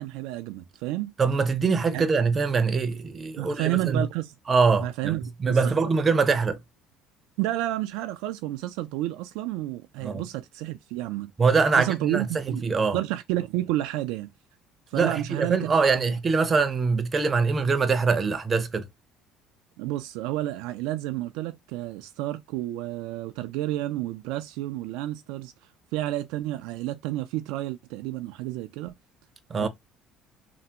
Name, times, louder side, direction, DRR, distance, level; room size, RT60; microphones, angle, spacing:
voice 1, 0.0-1.1 1.9-2.1 3.4-4.3 4.8-5.9 7.4-11.3 11.8-14.3 14.9-16.1 19.8-25.5 25.9-29.0 29.6-29.7, right 15 dB, 80° right, 0.3 m, -30 dB
voice 2, 1.2-4.0 4.5-6.6 10.0-10.2 11.4-13.0 14.9-18.9 29.5-29.7, right 4 dB, 30° right, 0.6 m, -23 dB
3.3 x 2.0 x 2.8 m
supercardioid pair, 90°, 0 cm